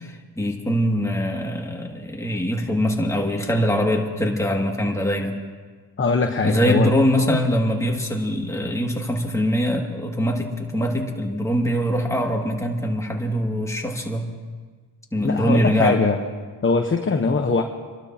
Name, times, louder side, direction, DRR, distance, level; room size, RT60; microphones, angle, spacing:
voice 1, 0.0-5.4 6.4-14.3 15.1-16.0, equal, 5° left, 0 dB, 2.3 m, -23 dB
voice 2, 6.0-6.9 7.2-7.4 15.2-16.2 16.6-17.6, left 4 dB, 25° left, 4 dB, 1.1 m, -21 dB
29.5 x 12.5 x 2.9 m, 1.5 s
cardioid pair, 85°, 49 cm